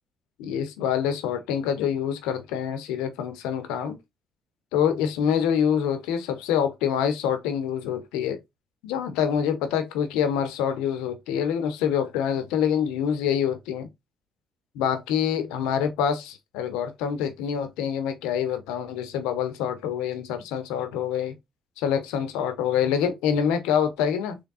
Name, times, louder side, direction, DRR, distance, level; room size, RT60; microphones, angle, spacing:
voice 1, 0.4-4.0 4.7-8.4 8.8-13.9 14.7-21.3 21.8-24.4, left 8 dB, 90° left, 0.9 m, -26 dB
3.5 x 3.3 x 4.1 m
supercardioid pair, 80°, 0 cm